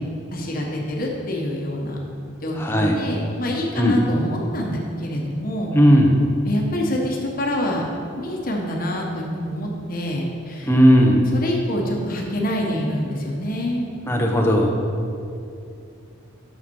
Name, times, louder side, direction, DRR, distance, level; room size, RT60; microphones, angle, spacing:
voice 1, 0.3-2.0 2.4-5.7 6.5-7.8 8.2-10.7 11.3-13.9, left 1 dB, 45° left, -1 dB, 1.2 m, -26 dB
voice 2, 2.6-3.0 3.7-4.0 5.7-6.2 10.7-11.3 14.1-14.8, equal, 10° left, 0 dB, 0.9 m, -16 dB
8.4 x 6.5 x 5.4 m, 2.5 s
head